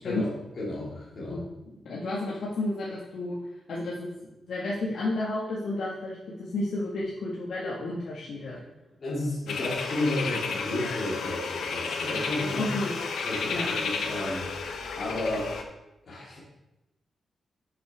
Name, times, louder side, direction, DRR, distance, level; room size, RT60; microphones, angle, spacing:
voice 1, 0.0-1.4 9.0-12.7 13.2-15.5 16.1-16.4, left 1 dB, 40° left, -7 dB, 2.8 m, -32 dB
voice 2, 1.8-3.4 3.7-4.1 4.5-8.6 12.6-13.0 13.4-13.7, left 2 dB, 70° left, -6 dB, 1.6 m, -31 dB
sound 1, 9.5-15.6, left 4 dB, 85° left, 1.0 m, -32 dB
9.9 x 6.7 x 3.4 m, 0.96 s
wide cardioid pair, 160°, 0 cm